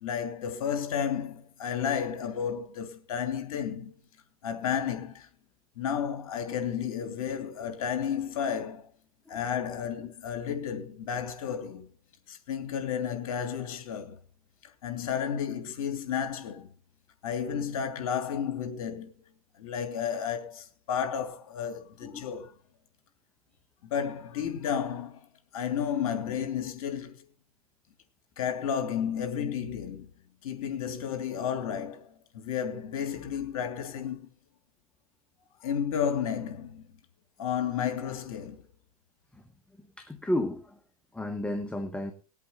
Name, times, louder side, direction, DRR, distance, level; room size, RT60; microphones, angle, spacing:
voice 1, 0.0-3.9 4.4-5.3 5.8-8.9 9.3-11.9 12.3-14.2 14.6-16.7 17.2-19.1 19.6-22.5 23.8-25.2 25.5-27.2 28.4-30.1 30.4-34.3 35.6-36.8 37.4-38.7, left 8 dB, 65° left, 3.1 m, -32 dB
voice 2, 40.0-40.8 41.1-42.1, left 1 dB, 5° left, 1.3 m, -32 dB
19.0 x 8.4 x 4.1 m
hypercardioid pair, 115°, 19 cm